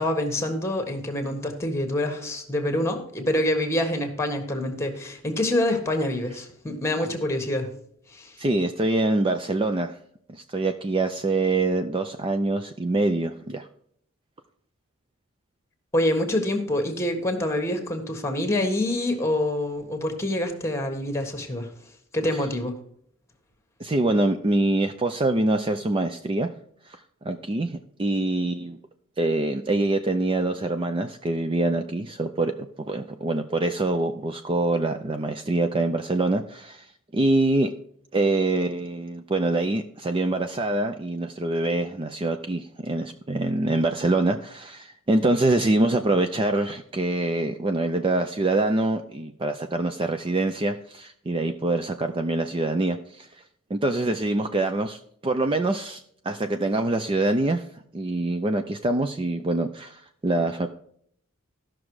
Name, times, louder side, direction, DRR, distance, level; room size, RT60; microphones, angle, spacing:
voice 1, 0.0-7.7 8.1-8.4 15.9-21.7 22.1-22.8, left 1 dB, 15° left, 6 dB, 1.5 m, -26 dB
voice 2, 8.4-9.9 10.3-13.7 23.8-26.5 26.9-27.0 27.2-28.8 29.2-32.5 32.9-36.9 37.1-37.7 38.1-53.3 53.7-57.6 57.9-60.7, right 2 dB, 25° right, 7 dB, 0.5 m, -25 dB
14.0 x 6.1 x 4.8 m, 0.66 s
head